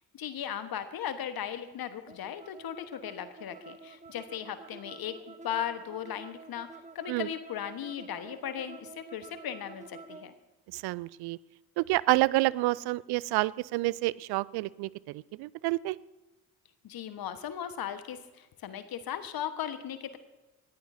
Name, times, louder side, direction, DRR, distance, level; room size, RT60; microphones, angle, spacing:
voice 1, 0.1-6.7 6.9-10.3 16.8-20.2, left 9 dB, 45° left, 10 dB, 1.3 m, -37 dB
sound 1, 2.1-10.3, right 4 dB, 15° right, 1.0 m, -49 dB
voice 2, 10.7-11.4 11.8-16.0, right 20 dB, 55° right, 22 dB, 0.5 m, -29 dB
20.0 x 14.5 x 2.7 m, 1.1 s
hypercardioid pair, 55°, 48 cm